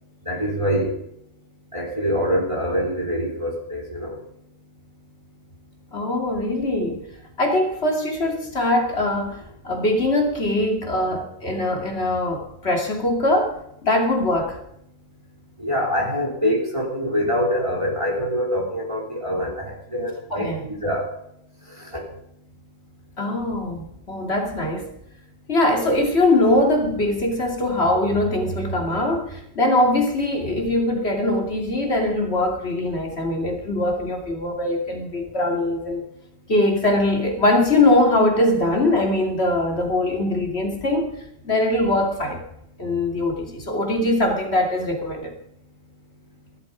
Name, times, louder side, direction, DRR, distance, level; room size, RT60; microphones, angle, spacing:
voice 1, 0.3-0.9 1.7-4.2 15.6-21.1 21.9-22.0, equal, 25° right, -1 dB, 4.0 m, -24 dB
voice 2, 5.9-7.0 7.4-13.6 13.8-14.6 20.3-20.7 23.2-24.9 25.5-36.0 36.5-41.1 41.4-42.4 42.8-45.3, left 1 dB, 55° left, 2 dB, 2.9 m, -22 dB
15.5 x 13.0 x 5.1 m, 0.75 s
omnidirectional pair, 1.3 m